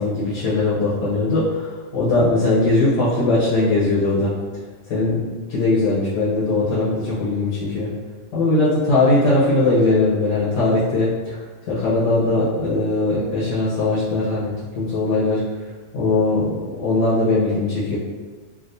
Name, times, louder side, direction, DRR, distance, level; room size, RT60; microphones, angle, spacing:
voice 1, 0.0-4.3 4.9-5.2 5.5-7.9 8.3-11.4 11.7-15.4 15.9-18.0, left 2 dB, 80° left, -9 dB, 1.5 m, -20 dB
3.6 x 2.5 x 2.6 m, 1.4 s
omnidirectional pair, 1.8 m